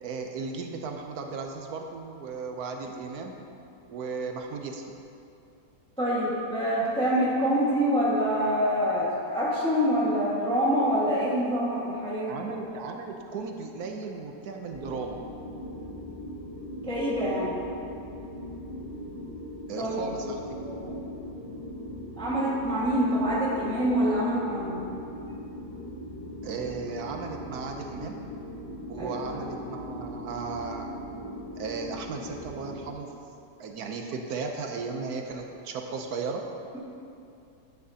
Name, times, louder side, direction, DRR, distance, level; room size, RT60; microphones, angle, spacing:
voice 1, 0.0-3.3 3.9-4.8 12.3-15.2 19.7-20.4 26.4-28.2 28.9-30.9 31.6-33.1 33.6-36.4, right 4 dB, 70° right, 3 dB, 1.1 m, -35 dB
voice 2, 6.0-12.3 16.8-17.5 19.8-20.3 20.6-20.9 22.2-24.8 29.0-29.2, equal, 5° left, -7 dB, 1.4 m, -26 dB
sound 1, 14.7-32.9, equal, 35° left, 0.9 m, -40 dB
11.0 x 9.8 x 2.8 m, 2.7 s
omnidirectional pair, 1.8 m